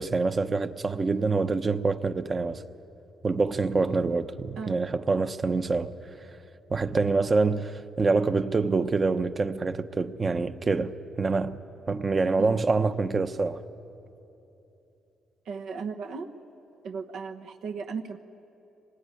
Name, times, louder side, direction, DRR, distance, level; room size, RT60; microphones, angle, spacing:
voice 1, 0.0-2.6 3.2-5.9 6.7-11.6 11.9-13.6, right 3 dB, 30° right, 1.0 m, -26 dB
voice 2, 15.4-16.3 16.8-18.2, right 5 dB, 70° right, 1.2 m, -36 dB
25.5 x 20.0 x 9.9 m
cardioid pair, 90°, 0 cm